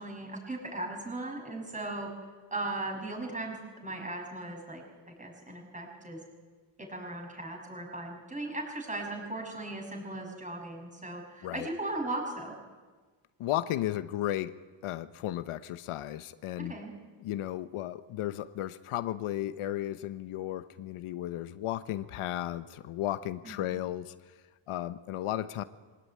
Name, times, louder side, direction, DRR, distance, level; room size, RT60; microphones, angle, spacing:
voice 1, 0.0-2.1 2.5-6.2 6.8-12.6 16.6-16.9 23.4-23.7, right 2 dB, 15° right, 0 dB, 7.1 m, -38 dB
voice 2, 13.4-14.5 14.8-16.7 17.2-24.1 24.7-25.6, left 13 dB, 80° left, 13 dB, 1.0 m, -34 dB
24.0 x 18.5 x 9.5 m, 1.4 s
cardioid pair, 125°, 50 cm